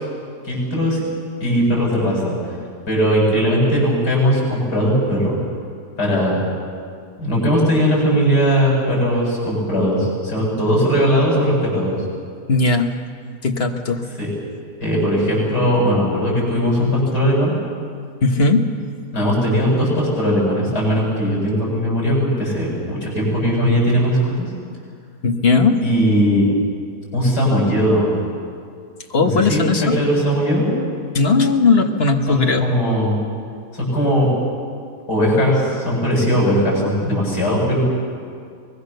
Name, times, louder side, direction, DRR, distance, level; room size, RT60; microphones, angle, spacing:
voice 1, 0.4-1.0 1.4-2.4 2.9-5.4 6.0-6.4 7.2-12.0 14.2-14.3 14.8-17.6 19.1-24.5 25.8-26.5 27.1-28.1 29.2-30.8 32.3-33.2 33.7-34.3 35.1-37.8, equal, 85° left, -3 dB, 8.4 m, -19 dB
voice 2, 12.5-12.9 13.4-14.0 18.2-18.7 25.2-25.8 29.1-30.0 31.1-32.7, left 3 dB, 40° left, 4 dB, 1.6 m, -17 dB
24.0 x 20.5 x 6.8 m, 2.2 s
omnidirectional pair, 1.7 m